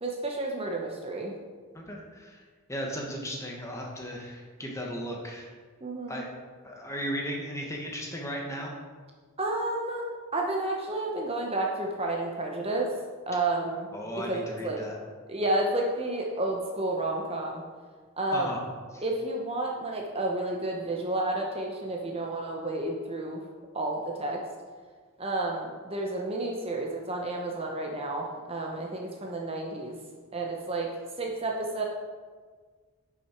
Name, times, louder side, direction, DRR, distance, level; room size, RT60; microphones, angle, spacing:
voice 1, 0.0-1.3 5.8-6.2 9.4-12.9 13.3-13.9 14.2-14.8 15.3-17.6 18.2-18.5 19.0-23.4 23.7-24.4 25.2-30.0 30.3-30.9 31.2-31.8, right 2 dB, 25° right, 0 dB, 0.9 m, -31 dB
voice 2, 1.7-2.4 2.7-5.5 6.1-6.3 6.6-8.7 13.9-15.0 18.3-18.6 18.9-19.0, equal, 15° left, -1 dB, 1.3 m, -36 dB
10.5 x 6.2 x 4.5 m, 1.5 s
head